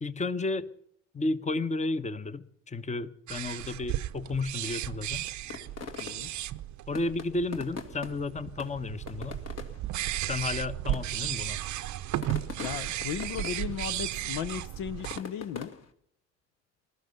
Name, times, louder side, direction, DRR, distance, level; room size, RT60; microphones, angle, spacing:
voice 1, 0.0-0.7 1.1-5.2 6.9-9.4 10.3-11.6, left 3 dB, 20° left, 1.1 m, -32 dB
sound 1, 3.3-15.2, right 14 dB, 55° right, 0.7 m, -35 dB
sound 2, 5.5-6.5 6.9-8.3 8.6-9.9 10.6-10.7 10.9-11.3 11.9-13.9 14.2-15.9, left 5 dB, 45° left, 2.0 m, -41 dB
voice 2, 6.0-6.3 12.6-15.7, left 9 dB, 65° left, 0.9 m, -36 dB
20.0 x 12.5 x 5.4 m
hypercardioid pair, 60°, 35 cm